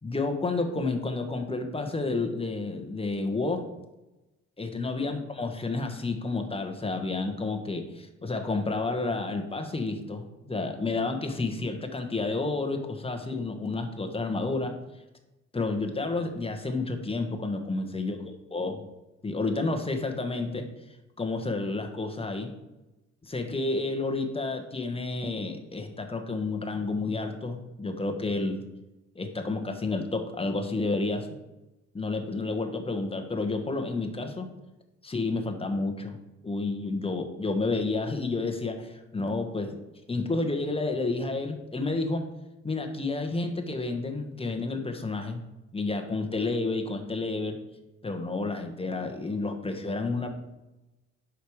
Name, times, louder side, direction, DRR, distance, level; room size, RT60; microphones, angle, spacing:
voice 1, 0.0-3.7 4.6-14.7 15.5-18.2 18.5-18.8 19.2-20.7 21.2-22.5 23.2-28.6 29.1-31.3 31.9-34.5 35.0-36.2 36.4-39.8 40.1-42.2 42.6-45.4 45.7-47.6 48.0-50.3, left 3 dB, 20° left, 5 dB, 1.4 m, -30 dB
7.9 x 6.5 x 5.0 m, 1.0 s
cardioid pair, 90°, 30 cm